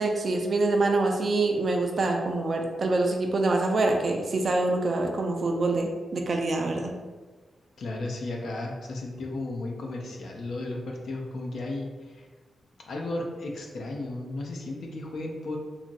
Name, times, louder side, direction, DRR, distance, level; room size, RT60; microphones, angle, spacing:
voice 1, 0.0-6.9, right 2 dB, 55° right, 2 dB, 0.3 m, -25 dB
voice 2, 7.8-12.3 12.9-15.6, left 2 dB, 80° left, 0 dB, 0.4 m, -34 dB
2.9 x 2.4 x 2.5 m, 1.4 s
cardioid pair, 80°, 0 cm